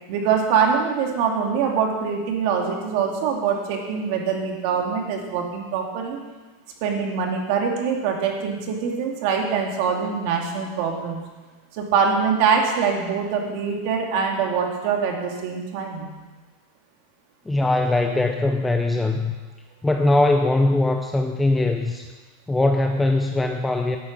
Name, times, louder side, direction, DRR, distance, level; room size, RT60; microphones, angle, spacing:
voice 1, 0.1-6.2 6.8-11.2 11.7-16.2, right 6 dB, 55° right, 1 dB, 2.7 m, -24 dB
voice 2, 17.5-19.3 19.8-22.1 22.5-24.0, left 2 dB, 5° left, 4 dB, 0.6 m, -21 dB
11.5 x 9.5 x 7.5 m, 1.3 s
supercardioid pair, 155°, 0 cm